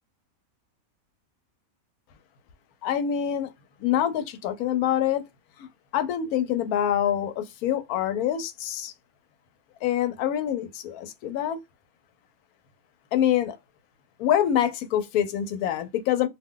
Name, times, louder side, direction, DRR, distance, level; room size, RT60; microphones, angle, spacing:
voice 1, 2.8-3.5 3.8-5.2 5.6-5.7 5.9-8.9 9.8-11.6 13.1-13.6 14.2-16.3, left 10 dB, 85° left, 1.1 m, -25 dB
2.5 x 2.2 x 3.6 m
omnidirectional pair, 1.5 m